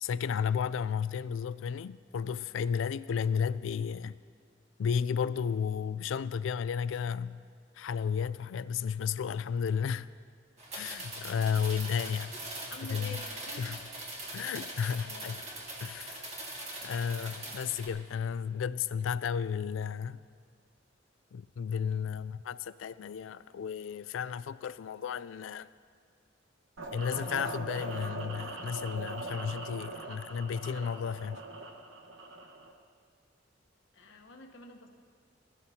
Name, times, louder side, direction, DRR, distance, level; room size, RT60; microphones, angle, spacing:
voice 1, 0.0-4.2 4.8-7.4 7.8-10.1 10.7-12.3 12.9-13.2 13.6-13.8 14.3-15.4 15.8-16.3 16.8-20.2 21.3-25.7 26.9-31.4, left 7 dB, 85° left, 0.3 m, -33 dB
sound 1, 10.6-17.9, right 1 dB, 35° right, 2.0 m, -42 dB
voice 2, 12.7-13.7 15.0-15.4 17.4-17.5 33.9-34.9, left 3 dB, 65° left, 1.1 m, -47 dB
sound 2, 26.8-32.7, right 2 dB, 85° right, 1.2 m, -41 dB
19.0 x 13.0 x 2.8 m
head